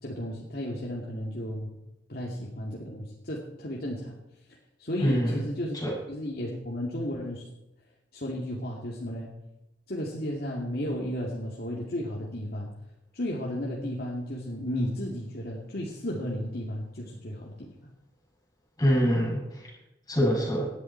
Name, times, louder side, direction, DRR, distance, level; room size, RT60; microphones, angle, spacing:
voice 1, 0.0-1.7 2.1-4.1 4.8-5.8 6.1-7.5 8.1-9.3 9.9-12.7 13.1-17.5, equal, 55° left, -3 dB, 2.5 m, -33 dB
voice 2, 5.0-5.4 5.7-6.0 18.8-19.7 20.1-20.7, equal, 20° left, -4 dB, 7.5 m, -25 dB
19.0 x 12.0 x 4.6 m, 0.94 s
head